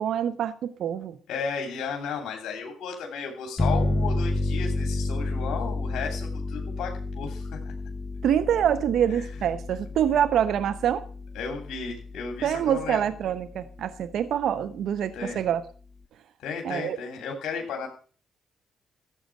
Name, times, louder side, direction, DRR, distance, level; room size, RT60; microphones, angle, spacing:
voice 1, 0.0-1.2 8.2-11.0 12.4-15.6 16.6-17.0, right 9 dB, 75° right, 13 dB, 0.7 m, -25 dB
voice 2, 1.3-7.7 9.1-9.2 11.3-13.0 15.1-15.4 16.4-17.9, left 5 dB, 75° left, 2 dB, 2.9 m, -34 dB
sound 1, 3.6-12.9, left 2 dB, 25° left, 1.0 m, -30 dB
13.5 x 7.9 x 6.1 m, 0.41 s
supercardioid pair, 60°, 0 cm